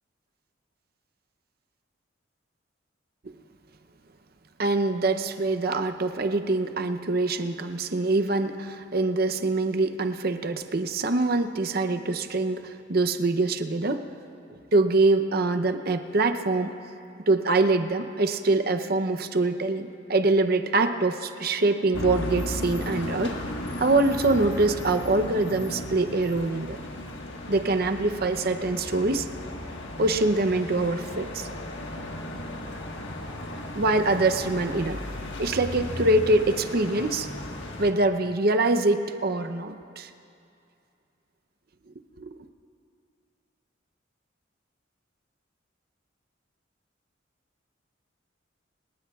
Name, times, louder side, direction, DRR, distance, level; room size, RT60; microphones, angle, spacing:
voice 1, 4.6-14.1 14.7-16.7 17.3-23.3 23.8-26.8 27.5-29.3 30.0-31.5 33.7-35.0 35.4-37.3 37.8-40.1 42.2-42.5, right 2 dB, 50° right, 8 dB, 0.7 m, -24 dB
sound 1, 21.9-37.9, left 1 dB, 70° left, 1.5 m, -35 dB
28.5 x 18.5 x 2.4 m, 2.6 s
head